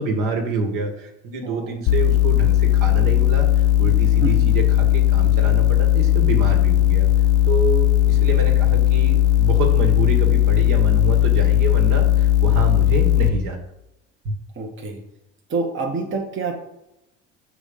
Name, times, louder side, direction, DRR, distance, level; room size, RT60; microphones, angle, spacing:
voice 1, 0.0-7.1 7.5-13.6 14.2-14.3, right 3 dB, 60° right, 2 dB, 1.7 m, -27 dB
voice 2, 1.4-1.8 4.2-4.7 14.6-15.0 15.5-16.6, right 3 dB, 30° right, 0 dB, 1.2 m, -27 dB
sound 1, 1.9-13.3, left 12 dB, 50° left, 0.7 m, -17 dB
6.1 x 3.6 x 5.4 m, 0.88 s
hypercardioid pair, 65°, 37 cm